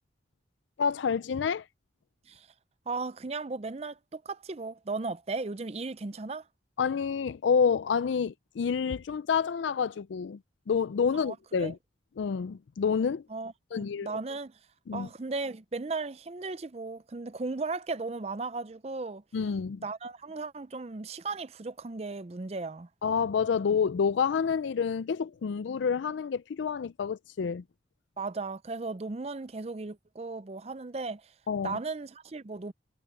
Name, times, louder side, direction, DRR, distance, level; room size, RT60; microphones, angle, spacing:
voice 1, 0.8-1.7 6.8-10.4 10.7-11.8 12.2-13.2 13.7-14.1 14.9-15.1 19.3-19.8 23.0-27.6 31.5-31.8, left 6 dB, 80° left, 0.4 m, -28 dB
voice 2, 2.9-6.5 11.1-11.7 13.3-14.6 14.9-19.2 19.8-22.9 28.2-31.3 31.6-32.7, right 3 dB, 35° right, 0.5 m, -36 dB
head